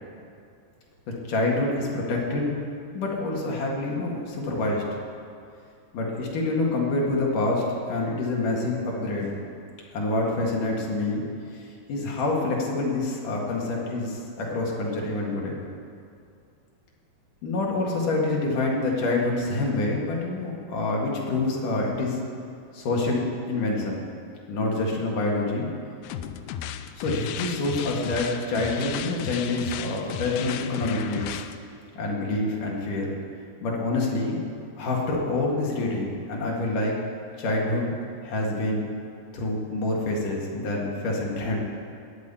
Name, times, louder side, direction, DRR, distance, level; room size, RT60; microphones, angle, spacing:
voice 1, 1.3-2.5 2.9-4.8 5.9-9.4 9.9-11.2 11.5-15.6 17.4-22.2 22.7-23.2 23.5-24.0 24.5-25.7 27.0-31.4 31.9-33.1 33.6-34.4 34.8-37.0 37.4-37.9 38.2-38.9 39.3-41.6, left 2 dB, 55° left, -2 dB, 3.3 m, -27 dB
sound 1, 26.0-31.6, left 10 dB, 80° left, 2.3 m, -35 dB
20.0 x 7.4 x 8.5 m, 2.4 s
omnidirectional pair, 4.8 m